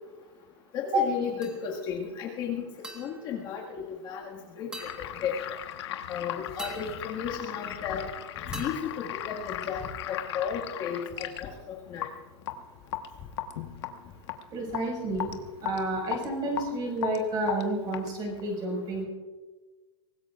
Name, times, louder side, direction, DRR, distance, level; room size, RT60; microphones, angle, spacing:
voice 1, 0.7-2.6 3.0-4.7 5.0-5.6 6.1-8.1 8.5-12.1, left 7 dB, 30° left, -2 dB, 1.9 m, -34 dB
sound 1, 1.4-2.0 2.8-4.3 4.7-5.7 6.6-8.1 8.5-9.9, right 2 dB, 5° right, 1.5 m, -46 dB
sound 2, 4.7-18.4, left 12 dB, 65° left, 1.3 m, -37 dB
voice 2, 14.5-15.3 15.6-19.1, right 1 dB, 25° right, 1 dB, 5.6 m, -30 dB
24.0 x 18.5 x 2.5 m, 1.3 s
supercardioid pair, 160°, 15 cm